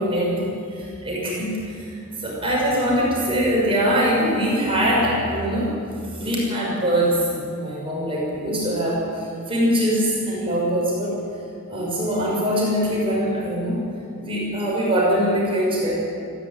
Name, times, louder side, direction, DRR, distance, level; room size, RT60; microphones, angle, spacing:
voice 1, 0.0-5.7 6.2-11.2 11.7-13.8 14.2-15.9, equal, 25° right, -4 dB, 5.9 m, -22 dB
19.5 x 15.5 x 9.9 m, 2.4 s
head